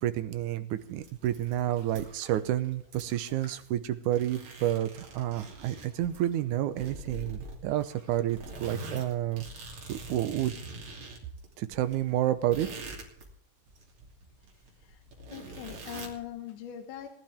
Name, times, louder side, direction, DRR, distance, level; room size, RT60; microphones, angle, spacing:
voice 1, 0.0-9.4 9.9-10.5 11.6-12.7, right 12 dB, 75° right, 10 dB, 2.4 m, -30 dB
sound 1, 0.8-2.4 2.7-3.9 4.1-6.3 6.8-7.9 8.3-13.3 13.7-16.2, right 2 dB, 60° right, 4.1 m, -44 dB
sound 2, 1.1-7.2 7.6-9.1, right 2 dB, 30° right, 4.9 m, -60 dB
voice 2, 15.3-17.1, left 10 dB, 75° left, 5 dB, 2.8 m, -41 dB
19.5 x 12.0 x 3.6 m, 0.65 s
omnidirectional pair, 3.7 m